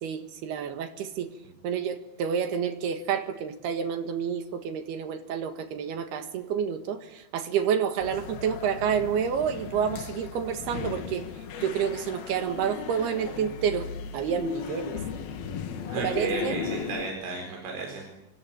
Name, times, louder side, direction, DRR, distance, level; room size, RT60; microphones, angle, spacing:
voice 1, 0.0-1.3 1.6-11.2 11.6-13.9 14.1-15.0 16.0-16.6, right 7 dB, 65° right, 8 dB, 3.2 m, -29 dB
sound 1, 8.0-17.1, left 7 dB, 60° left, 3.1 m, -36 dB
voice 2, 15.9-18.2, right 4 dB, 85° right, 2 dB, 7.1 m, -34 dB
26.0 x 25.0 x 8.6 m, 0.88 s
omnidirectional pair, 5.5 m